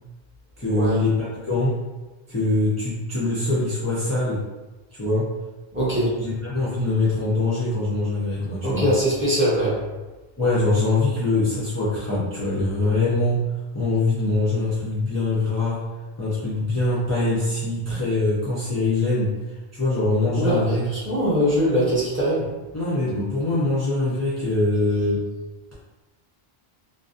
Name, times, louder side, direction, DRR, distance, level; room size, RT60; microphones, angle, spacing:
voice 1, 0.6-1.8 2.3-4.4 4.9-5.2 6.2-8.9 10.4-13.4 13.7-15.8 16.2-19.3 19.7-20.8 22.7-25.2, left 2 dB, 25° left, -10 dB, 0.4 m, -23 dB
voice 2, 5.7-6.2 8.6-9.8 20.3-22.5, equal, 15° right, -8 dB, 0.7 m, -22 dB
2.5 x 2.0 x 2.4 m, 1.2 s
omnidirectional pair, 1.0 m